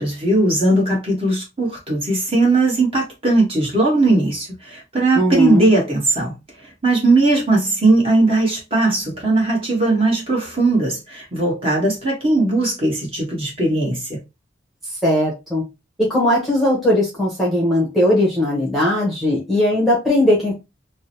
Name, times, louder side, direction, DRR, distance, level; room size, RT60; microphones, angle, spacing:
voice 1, 0.0-6.3 6.8-14.2, right 2 dB, 30° right, 1.5 m, -18 dB
voice 2, 5.1-5.7 15.0-15.6 16.0-20.6, left 1 dB, ahead, 1.0 m, -18 dB
3.5 x 2.1 x 2.8 m
head